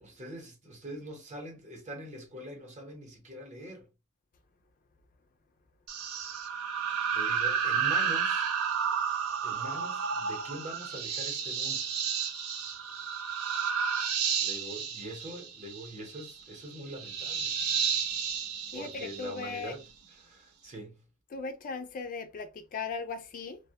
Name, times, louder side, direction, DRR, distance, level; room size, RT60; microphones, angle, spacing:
voice 1, 0.0-3.9 7.1-8.5 9.4-11.9 14.4-17.5 18.7-19.8 20.1-21.0, right 1 dB, 35° right, 0.8 m, -43 dB
sound 1, 5.9-19.7, right 7 dB, 85° right, 0.5 m, -32 dB
voice 2, 18.7-19.8 21.3-23.6, left 4 dB, 40° left, 0.3 m, -38 dB
2.1 x 2.1 x 2.7 m
head